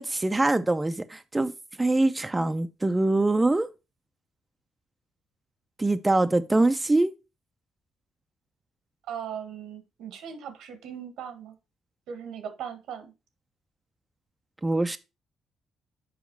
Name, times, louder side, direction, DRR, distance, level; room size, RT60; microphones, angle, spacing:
voice 1, 0.0-1.5 1.8-3.7 5.8-7.1 14.6-15.0, right 2 dB, 15° right, 0.5 m, -23 dB
voice 2, 9.1-11.5 12.1-13.1, right 8 dB, 85° right, 1.5 m, -38 dB
7.2 x 5.1 x 4.5 m
cardioid pair, 90°, 0 cm